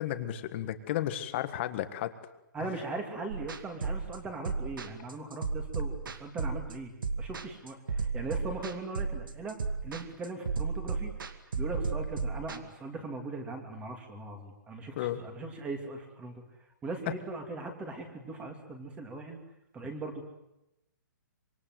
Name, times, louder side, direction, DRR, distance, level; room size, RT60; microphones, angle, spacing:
voice 1, 0.0-2.1 2.6-2.7 15.0-15.2, left 12 dB, 35° left, 10 dB, 1.7 m, -33 dB
voice 2, 2.5-9.6 9.8-11.1 11.6-16.4 16.8-19.4 19.7-20.2, right 3 dB, 10° right, 5 dB, 2.8 m, -39 dB
sound 1, 3.3-12.6, right 4 dB, 80° right, 2.3 m, -34 dB
26.0 x 23.0 x 7.9 m, 0.88 s
hypercardioid pair, 165°, 11 cm